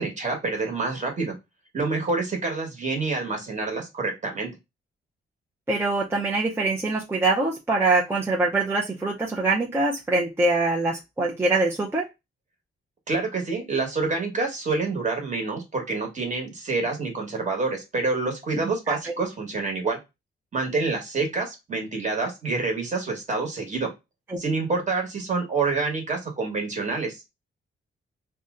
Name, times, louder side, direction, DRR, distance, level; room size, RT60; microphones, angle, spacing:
voice 1, 0.0-1.3 1.7-4.5 13.1-20.0 20.5-23.9 24.4-27.2, right 3 dB, 35° right, 1 dB, 1.2 m, -27 dB
voice 2, 5.7-12.1 18.9-19.1 24.3-24.4, right 2 dB, 10° right, -3 dB, 0.5 m, -24 dB
2.6 x 2.1 x 3.5 m, 0.23 s
cardioid pair, 115°, 21 cm